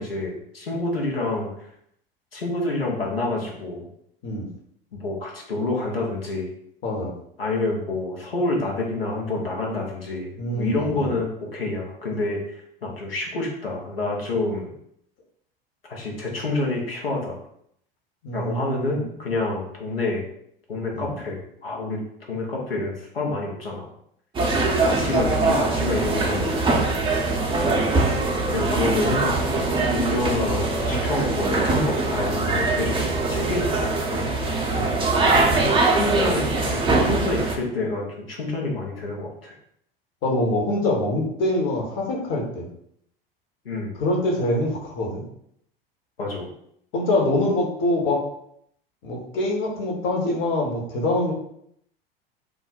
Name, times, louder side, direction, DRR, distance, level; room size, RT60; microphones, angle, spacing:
voice 1, 0.0-1.7 2.3-3.8 4.9-6.5 7.4-14.7 15.9-17.4 18.3-20.2 20.7-22.0 22.3-23.9 24.8-26.7 28.5-34.5 35.2-35.6 36.0-39.5 43.6-43.9 46.2-46.5, left 2 dB, 85° left, -2 dB, 0.8 m, -28 dB
voice 2, 6.8-7.1 10.4-11.1 18.2-19.0 20.9-21.1 27.6-27.8 34.7-35.0 40.2-42.7 43.9-45.2 46.9-48.2 49.0-51.3, left 1 dB, 45° left, -1 dB, 1.0 m, -25 dB
sound 1, 24.3-37.5, right 3 dB, 15° right, 0.6 m, -22 dB
2.4 x 2.1 x 3.9 m, 0.71 s
figure-of-eight pair, 80°, 29 cm